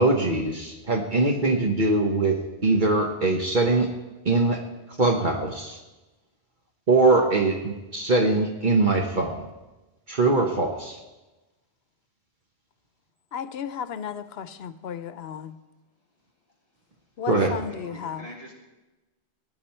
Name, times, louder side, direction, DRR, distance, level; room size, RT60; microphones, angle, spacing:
voice 1, 0.0-3.9 4.2-4.6 5.0-5.8 6.9-9.4 10.1-11.0 17.3-17.5, right 3 dB, 50° right, 2 dB, 1.2 m, -22 dB
voice 2, 13.3-15.6 17.2-18.3, left 8 dB, 85° left, 13 dB, 0.9 m, -34 dB
voice 3, 17.3-18.5, equal, 35° right, -4 dB, 3.3 m, -40 dB
19.5 x 9.3 x 4.4 m, 1.1 s
omnidirectional pair, 1.0 m